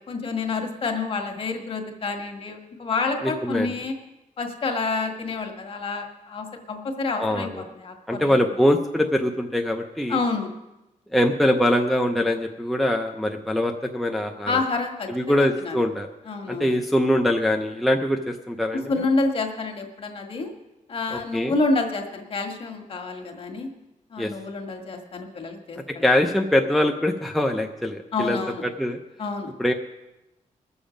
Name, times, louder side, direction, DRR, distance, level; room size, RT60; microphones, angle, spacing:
voice 1, 0.0-3.9 4.4-8.4 10.1-10.5 14.5-15.8 16.3-16.7 18.9-20.5 20.9-23.7 24.1-26.0 28.1-28.6 29.2-29.5, left 3 dB, 45° left, 4 dB, 1.6 m, -28 dB
voice 2, 3.2-3.7 7.2-7.6 8.1-10.2 11.1-14.6 15.1-16.1 16.5-18.9 21.1-21.5 24.2-24.3 26.0-29.0 29.6-29.7, left 1 dB, ahead, 2 dB, 0.6 m, -23 dB
21.0 x 7.2 x 5.1 m, 0.97 s
wide cardioid pair, 180°, 14 cm